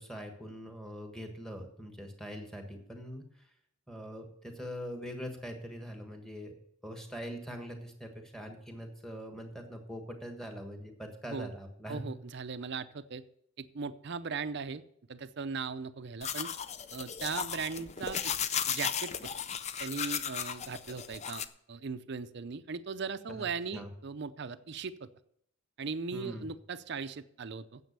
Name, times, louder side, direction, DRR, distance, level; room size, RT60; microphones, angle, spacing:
voice 1, 0.0-3.5 3.9-6.5 6.8-12.0 23.3-23.4 23.7-23.9 26.1-26.5, equal, ahead, 4 dB, 1.4 m, -43 dB
voice 2, 11.9-13.2 13.6-14.8 15.1-16.5 16.9-18.3 18.7-19.1 19.8-25.1 25.8-27.8, right 5 dB, 50° right, 12 dB, 0.5 m, -38 dB
sound 1, 16.2-21.5, left 8 dB, 30° left, 0.4 m, -35 dB
9.3 x 7.5 x 6.8 m, 0.70 s
head